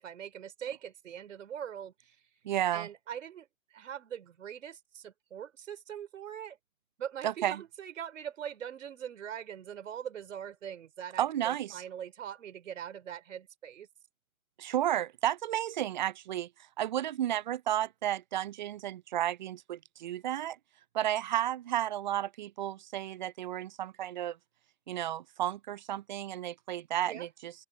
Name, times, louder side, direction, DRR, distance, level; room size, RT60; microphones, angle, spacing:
voice 1, 0.0-2.2 2.7-6.6 7.0-13.9 27.0-27.3, right 9 dB, 60° right, 4.6 m, -42 dB
voice 2, 2.4-2.9 7.2-7.6 11.2-11.8 14.6-16.5 16.8-20.6 20.9-24.4 24.9-27.5, right 12 dB, 35° right, 0.5 m, -32 dB
open air
hypercardioid pair, 135°, 43 cm